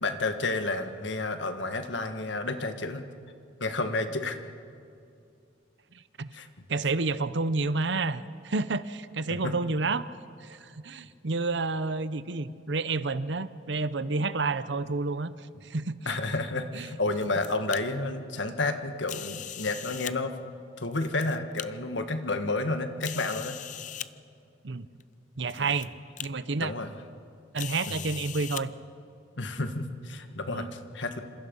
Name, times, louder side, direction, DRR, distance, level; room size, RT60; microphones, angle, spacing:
voice 1, 0.0-3.0 3.6-4.4 6.3-6.5 9.3-9.5 16.1-20.3 20.8-23.6 25.7-25.8 26.6-26.9 27.9-28.1 29.4-31.2, left 2 dB, 75° left, 7 dB, 1.7 m, -31 dB
voice 2, 6.7-10.1 10.4-15.3 15.6-16.2 16.7-16.9 24.6-24.9 25.4-25.9 26.2-26.7 27.5-28.7 30.5-30.7, right 3 dB, 70° right, 14 dB, 0.8 m, -30 dB
sound 1, 16.9-17.8 19.0-20.1 20.8-21.7 22.3-22.4 23.0-24.1 25.0-25.1 25.5-25.9 26.2-26.3 27.6-28.6, left 11 dB, 40° left, 0.5 m, -39 dB
28.5 x 26.5 x 5.5 m, 2.5 s
head